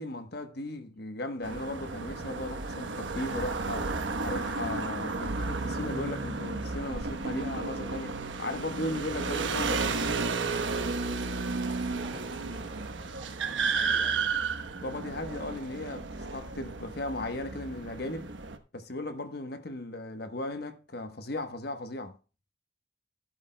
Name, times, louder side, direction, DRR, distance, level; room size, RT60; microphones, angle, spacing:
voice 1, 0.0-3.9 4.2-9.9 14.8-18.3 18.7-22.2, left 1 dB, 55° left, 1.2 m, -36 dB
sound 1, 1.4-18.6, right 4 dB, 75° right, 1.1 m, -33 dB
voice 2, 12.0-14.4, right 1 dB, 25° right, 3.3 m, -49 dB
16.5 x 8.2 x 2.2 m
head